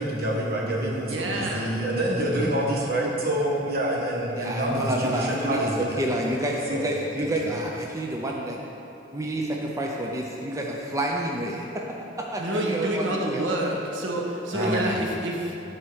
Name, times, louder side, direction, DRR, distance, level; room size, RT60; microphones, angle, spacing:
voice 1, 0.0-6.2 6.7-7.5 14.5-14.9, right 1 dB, 55° right, -3 dB, 1.5 m, -27 dB
voice 2, 1.1-1.7 12.4-15.6, right 1 dB, 80° right, -1 dB, 1.1 m, -28 dB
voice 3, 4.3-8.6 9.1-11.8 12.1-13.5 14.5-15.0, right 1 dB, 15° right, -1 dB, 0.6 m, -29 dB
9.8 x 4.3 x 6.2 m, 3.0 s
head